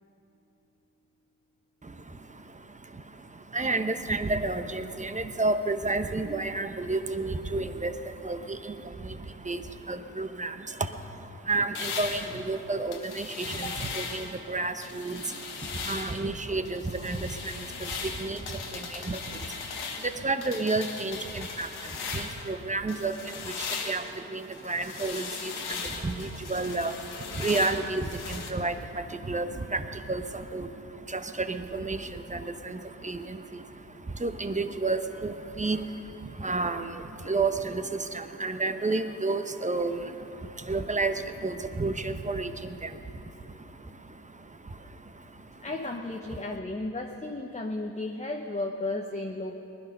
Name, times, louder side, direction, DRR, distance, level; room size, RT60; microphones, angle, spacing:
voice 1, 1.8-45.7 46.3-46.6, right 3 dB, 20° right, 8 dB, 1.0 m, -32 dB
sound 1, 11.8-14.4 14.8-16.3 16.7-22.5 22.9-28.5, left 5 dB, 80° left, 1.6 m, -38 dB
voice 2, 45.6-49.6, left 2 dB, 20° left, 1 dB, 1.1 m, -34 dB
20.0 x 11.0 x 5.4 m, 2.9 s
supercardioid pair, 60°, 38 cm